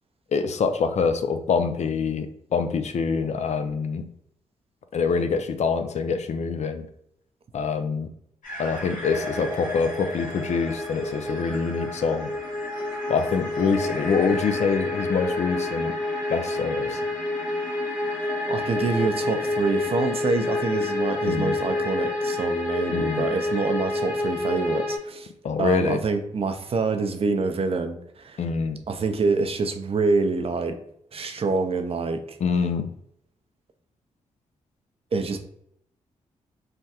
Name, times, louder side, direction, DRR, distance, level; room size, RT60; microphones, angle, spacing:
voice 1, 0.3-4.1 4.9-6.9 7.5-8.1 8.6-12.3 13.1-16.0 16.3-17.0 21.2-21.5 22.9-23.3 25.4-26.0 28.4-28.8 32.4-32.9, left 5 dB, 55° left, 8 dB, 0.4 m, -25 dB
sound 1, 8.4-25.0, left 2 dB, 80° left, 0.9 m, -29 dB
voice 2, 18.5-25.3 25.6-28.4 28.9-30.8 31.1-32.4 35.1-35.4, right 4 dB, 45° right, 7 dB, 0.5 m, -26 dB
3.3 x 2.2 x 2.8 m, 0.71 s
supercardioid pair, 45°, 14 cm